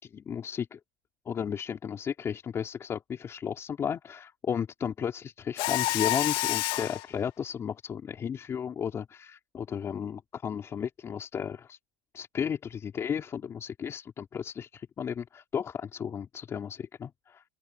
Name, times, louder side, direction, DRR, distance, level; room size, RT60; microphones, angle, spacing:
voice 1, 0.1-0.8 1.3-11.8 12.1-17.4, left 7 dB, 25° left, 4.3 m, -34 dB
Mechanisms, 5.6-7.0, left 17 dB, 50° left, 1.9 m, -28 dB
open air
supercardioid pair, 140°, 11 cm